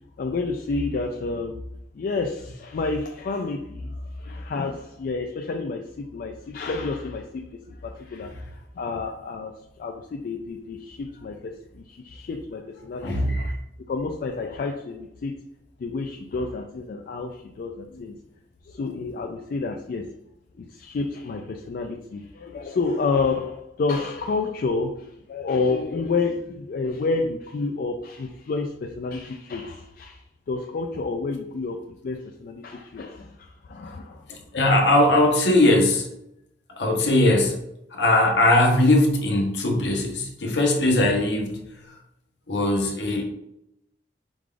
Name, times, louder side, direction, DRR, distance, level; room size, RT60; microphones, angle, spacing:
voice 1, 0.2-1.7 1.9-13.6 13.9-15.4 15.8-18.2 18.6-20.1 20.6-34.2 34.7-34.8, left 3 dB, 55° left, 3 dB, 0.3 m, -30 dB
voice 2, 13.0-13.4 17.9-18.0 34.3-36.1 36.8-37.6 37.9-41.8 42.5-43.2, left 1 dB, 75° left, 1 dB, 0.9 m, -20 dB
4.9 x 2.4 x 3.7 m, 0.81 s
head